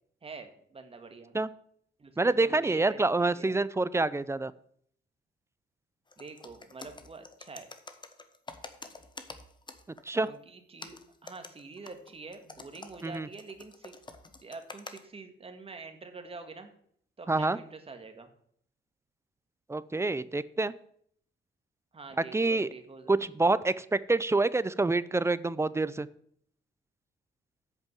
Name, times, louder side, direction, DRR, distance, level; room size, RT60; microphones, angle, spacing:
voice 1, 0.2-1.3 2.0-3.6 6.2-7.7 10.2-13.9 14.4-16.7 17.2-18.3 21.9-23.2, right 4 dB, 30° right, 7 dB, 1.6 m, -46 dB
voice 2, 2.2-4.5 10.1-10.3 13.0-13.3 17.3-17.6 19.7-20.7 22.3-22.7 23.1-26.1, right 3 dB, 15° right, 17 dB, 0.4 m, -27 dB
sound 1, 6.1-10.4 10.8-15.0, left 3 dB, 25° left, 1.0 m, -48 dB
8.2 x 5.2 x 7.5 m, 0.64 s
cardioid pair, 90°, 20 cm